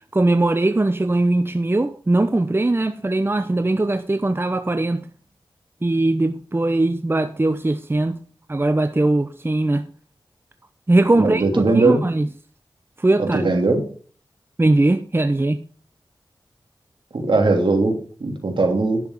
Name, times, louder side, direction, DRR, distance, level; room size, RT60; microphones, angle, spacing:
voice 1, 0.1-5.0 5.8-8.2 8.5-9.8 10.9-12.3 13.0-13.4 14.6-15.6, right 2 dB, 25° right, 0.8 m, -20 dB
voice 2, 11.2-12.0 13.2-13.8 17.1-19.0, right 3 dB, 65° right, 3.0 m, -19 dB
10.5 x 7.2 x 5.4 m
cardioid pair, 50°, 9 cm